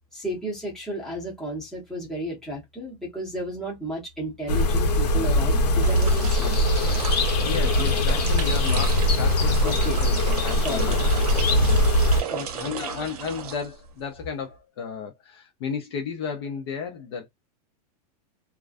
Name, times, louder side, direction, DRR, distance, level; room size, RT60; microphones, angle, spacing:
voice 1, 0.1-6.6 9.6-10.0 10.6-11.0 12.2-12.6, right 1 dB, ahead, 0.8 m, -33 dB
sound 1, 4.5-12.2, left 1 dB, 80° left, 1.0 m, -21 dB
sound 2, 5.8-14.1, right 8 dB, 65° right, 0.7 m, -35 dB
voice 2, 7.4-11.0 11.6-11.8 12.3-17.3, left 6 dB, 40° left, 0.5 m, -33 dB
2.3 x 2.2 x 2.4 m
supercardioid pair, 175°, 20 cm